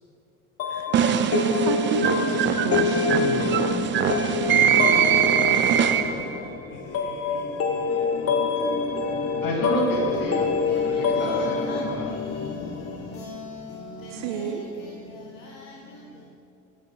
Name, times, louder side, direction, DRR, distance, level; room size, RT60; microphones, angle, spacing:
sound 1, 0.6-13.2, left 5 dB, 35° left, 0.7 m, -27 dB
sound 2, 0.9-6.4, right 8 dB, 30° right, 0.4 m, -22 dB
voice 1, 1.3-3.5 3.8-4.1 14.1-14.7, right 7 dB, 70° right, 7 dB, 0.6 m, -30 dB
voice 2, 4.8-6.2 6.7-8.5 10.7-16.3, left 3 dB, 75° left, -2 dB, 0.9 m, -39 dB
voice 3, 9.4-12.2, left 1 dB, 50° left, -1 dB, 1.8 m, -29 dB
7.9 x 7.3 x 3.0 m, 2.5 s
hypercardioid pair, 65°, 42 cm